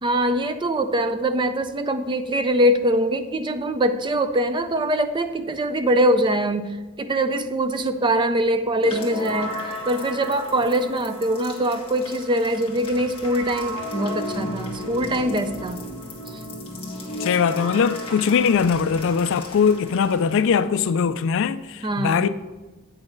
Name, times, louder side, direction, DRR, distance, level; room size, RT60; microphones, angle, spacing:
voice 1, 0.0-9.5 9.8-15.8 21.8-22.3, right 1 dB, 20° right, 0.4 m, -23 dB
sound 1, 8.8-20.7, left 1 dB, 25° left, 1.4 m, -34 dB
voice 2, 17.2-22.3, left 6 dB, 60° left, 0.3 m, -21 dB
8.7 x 6.1 x 3.8 m
head